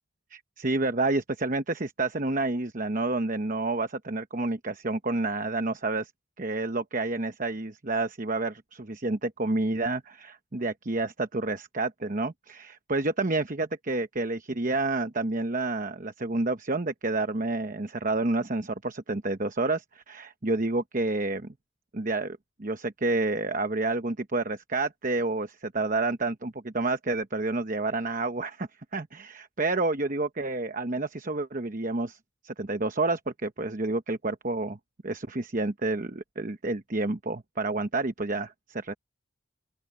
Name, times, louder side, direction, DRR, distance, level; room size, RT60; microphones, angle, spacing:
voice 1, 0.3-6.1 6.4-21.5 21.9-32.2 32.4-34.8 35.0-38.9, right 2 dB, 40° right, 1.0 m, -29 dB
open air
head